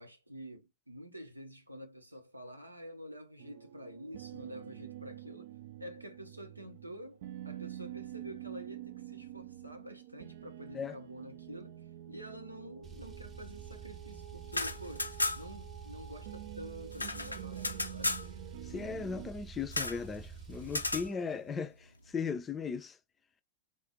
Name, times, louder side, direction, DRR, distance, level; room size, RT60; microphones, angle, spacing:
voice 1, 0.0-5.5 5.8-11.8 12.1-15.1 15.3-18.2, equal, 85° right, 0.7 m, -48 dB
sound 1, 3.4-19.3, right 12 dB, 55° right, 0.4 m, -47 dB
Car, 12.8-21.1, right 6 dB, 20° right, 0.9 m, -48 dB
sound 2, 14.4-15.6 15.9-16.0 16.3-18.3 19.7-20.0 20.7-21.1, left 2 dB, 80° left, 0.4 m, -34 dB
voice 2, 18.6-23.0, left 5 dB, 20° left, 0.4 m, -37 dB
3.7 x 2.4 x 3.8 m
figure-of-eight pair, 90°, 0 cm